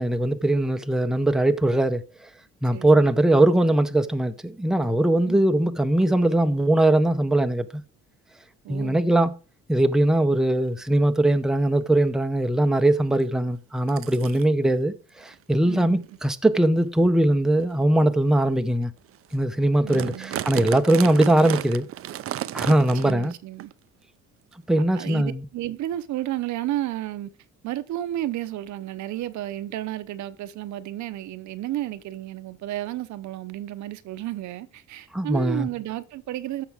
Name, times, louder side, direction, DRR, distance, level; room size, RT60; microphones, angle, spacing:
voice 1, 0.0-2.0 2.6-7.6 8.7-9.3 9.7-18.9 19.3-21.8 22.5-23.3 24.7-25.4 35.1-35.7, right 1 dB, ahead, 0.7 m, -21 dB
voice 2, 2.7-3.1 5.2-5.4 8.6-9.1 15.6-16.0 19.8-20.4 22.9-23.7 24.7-27.3 27.6-36.6, right 13 dB, 75° right, 0.8 m, -32 dB
sound 1, 10.0-10.1 10.5-10.8 11.4-11.5 11.8-12.1 13.2-13.3 13.9-14.4 15.2-15.3 16.0-16.2 16.8-16.9 17.6-17.7 18.3-18.4 18.8-18.9 19.1-19.4 19.6-23.3 23.6-23.7 24.5-24.6, right 12 dB, 50° right, 0.5 m, -33 dB
14.5 x 5.8 x 3.5 m
cardioid pair, 130°, 29 cm